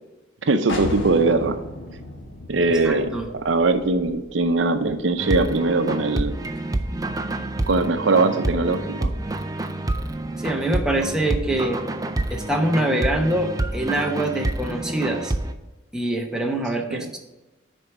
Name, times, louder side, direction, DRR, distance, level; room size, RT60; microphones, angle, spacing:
voice 1, 0.4-1.6 2.5-6.4 7.7-9.1 16.9-17.1, right 3 dB, 75° right, 8 dB, 0.6 m, -21 dB
sound 1, 0.7-6.2, left 1 dB, 85° left, 1.2 m, -36 dB
voice 2, 2.6-3.3 10.4-11.8 12.3-15.3 15.9-17.2, right 1 dB, 5° right, 1 dB, 0.8 m, -24 dB
sound 2, 5.2-15.5, right 2 dB, 20° right, 0.4 m, -28 dB
6.8 x 4.4 x 6.1 m, 1.1 s
head